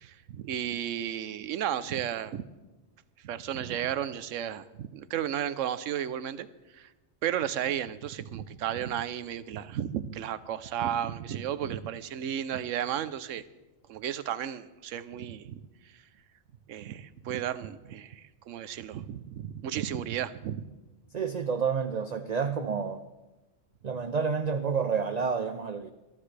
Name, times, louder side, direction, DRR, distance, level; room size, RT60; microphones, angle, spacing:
voice 1, 0.0-2.4 3.2-6.5 6.7-6.9 7.2-13.4 13.9-15.6 15.9-16.0 16.7-20.7, right 10 dB, 80° right, 15 dB, 1.0 m, -33 dB
voice 2, 21.1-23.1 23.8-25.9, right 6 dB, 50° right, 9 dB, 0.5 m, -29 dB
22.5 x 13.0 x 3.3 m, 1.1 s
omnidirectional pair, 1.3 m